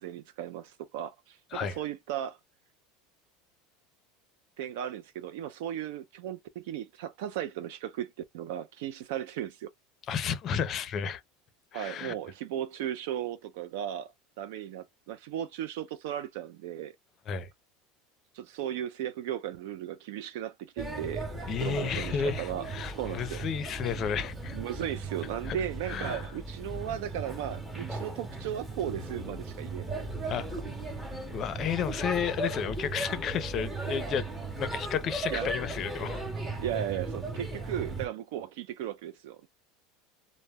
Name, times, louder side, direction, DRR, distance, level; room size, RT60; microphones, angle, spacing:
voice 1, 0.0-2.4 4.6-9.7 11.7-17.0 18.3-21.3 21.6-22.7 22.9-23.4 24.5-30.1 35.3-35.5 36.6-39.5, right 11 dB, 75° right, 0.3 m, -36 dB
voice 2, 10.1-11.2 11.7-12.1 17.3-17.5 21.5-24.6 25.5-25.6 25.9-26.2 30.3-30.6 31.3-34.3 34.6-36.2, left 7 dB, 35° left, 0.5 m, -32 dB
Male speech man speaking / Child speech kid speaking / Chatter, 20.8-38.1, right 2 dB, 10° right, 0.7 m, -37 dB
2.1 x 2.0 x 3.4 m
supercardioid pair, 150°, 0 cm